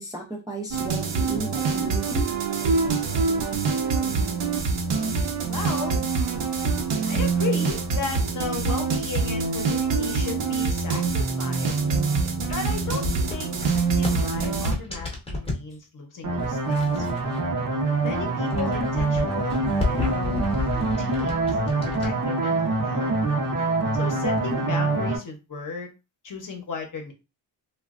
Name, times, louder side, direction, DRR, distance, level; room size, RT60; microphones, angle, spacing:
voice 1, 0.0-2.2, right 2 dB, 10° right, -3 dB, 0.4 m, -34 dB
sound 1, 0.7-14.7, right 4 dB, 85° right, 0.8 m, -25 dB
voice 2, 5.5-6.0 7.1-11.8 12.5-17.4 18.0-20.4 20.7-23.1 23.9-25.9 26.2-27.1, left 5 dB, 45° left, 2 dB, 0.8 m, -35 dB
sound 2, 11.9-15.7 16.4-17.7 18.0-22.1, left 3 dB, 15° left, 0.8 m, -32 dB
sound 3, 16.2-25.2, right 3 dB, 45° right, 0.7 m, -25 dB
3.0 x 2.2 x 2.4 m, 0.27 s
wide cardioid pair, 160°, 43 cm